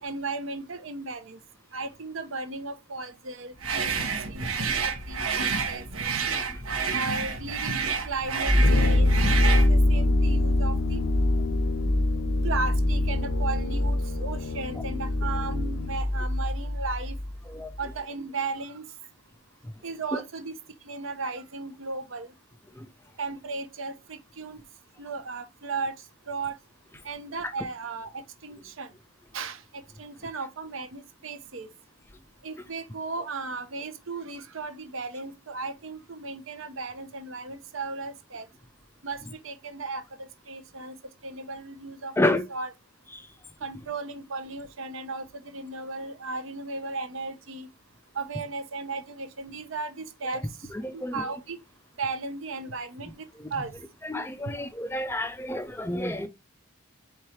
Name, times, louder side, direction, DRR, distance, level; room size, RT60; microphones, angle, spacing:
voice 1, 0.0-1.4 1.7-6.1 6.9-11.0 12.4-17.2 17.8-18.9 19.8-20.6 20.8-22.3 23.2-24.6 25.0-26.0 26.3-26.6 27.0-28.9 29.3-31.7 32.4-38.5 39.0-41.0 41.2-42.2 42.5-42.7 43.6-47.7 48.1-51.6 52.0-53.3 53.5-53.7, right 3 dB, 65° right, 0.7 m, -36 dB
Phasing Effect, 3.6-9.7, right 5 dB, 85° right, 1.0 m, -29 dB
sound 1, 8.5-17.5 17.7-17.9, left 1 dB, 45° right, 1.3 m, -24 dB
Brass instrument, 8.6-16.1, left 5 dB, 65° left, 0.6 m, -32 dB
voice 2, 50.8-51.1 54.0-56.3, left 1 dB, 10° left, 0.4 m, -28 dB
4.7 x 3.6 x 3.0 m
head